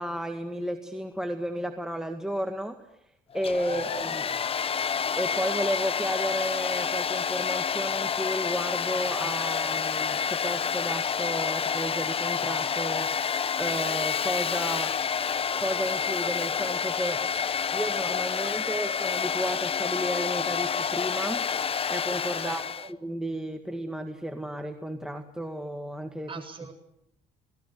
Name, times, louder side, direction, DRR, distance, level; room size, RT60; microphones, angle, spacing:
voice 1, 0.0-2.8 3.3-4.2 5.2-14.9 15.6-17.2 17.7-21.4 21.9-22.6 23.0-26.3, equal, 5° right, 5 dB, 1.9 m, -33 dB
Domestic sounds home sounds, 3.3-22.9, left 7 dB, 35° left, 0.9 m, -29 dB
voice 2, 3.7-4.4 22.4-22.9 26.3-26.7, right 5 dB, 30° right, 4 dB, 7.9 m, -43 dB
28.5 x 20.0 x 8.3 m, 0.80 s
cardioid pair, 110°, 17 cm